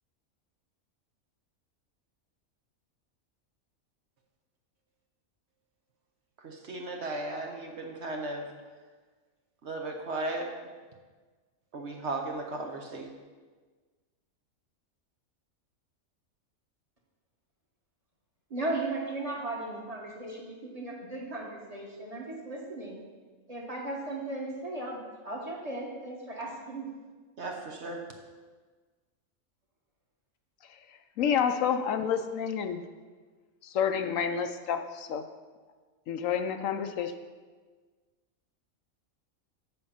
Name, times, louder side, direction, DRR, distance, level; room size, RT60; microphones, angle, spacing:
voice 1, 6.4-8.5 9.6-10.5 11.7-13.1 27.4-28.0, right 2 dB, 55° right, 2 dB, 1.1 m, -36 dB
voice 2, 18.5-23.0 23.5-26.9, right 2 dB, 25° right, -2 dB, 1.6 m, -36 dB
voice 3, 31.2-32.8 33.6-35.2 36.1-37.1, left 7 dB, 75° left, 7 dB, 1.0 m, -29 dB
7.7 x 7.3 x 5.5 m, 1.4 s
omnidirectional pair, 1.4 m